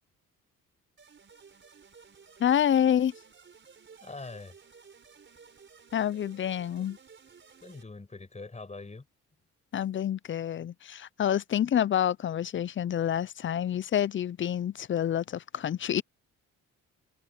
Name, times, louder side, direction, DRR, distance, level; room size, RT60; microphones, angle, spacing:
sound 1, 1.0-7.8, right 5 dB, 40° right, 5.0 m, -55 dB
voice 1, 2.4-3.1 5.9-7.0 9.7-16.0, left 9 dB, 40° left, 0.5 m, -28 dB
voice 2, 4.0-4.6 7.6-9.1, left 3 dB, 20° left, 7.1 m, -43 dB
cardioid pair, 90°, 30 cm